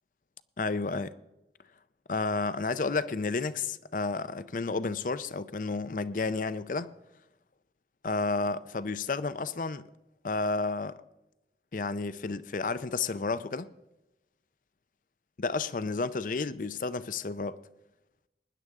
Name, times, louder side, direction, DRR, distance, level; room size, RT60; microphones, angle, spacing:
voice 1, 0.6-1.1 2.1-6.9 8.0-9.8 10.2-11.0 11.7-13.7 15.4-17.6, left 3 dB, 45° left, 0.5 m, -31 dB
19.5 x 10.5 x 3.6 m
head